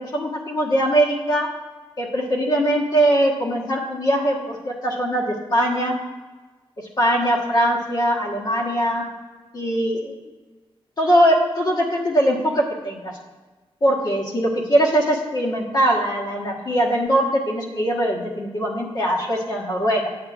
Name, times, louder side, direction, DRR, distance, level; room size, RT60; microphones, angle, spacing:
voice 1, 0.0-1.5 2.0-5.9 7.0-9.1 9.5-10.1 11.0-13.2 13.8-20.1, right 1 dB, 45° left, -2 dB, 1.3 m, -21 dB
8.6 x 7.2 x 2.5 m, 1.3 s
wide cardioid pair, 120°, 10 cm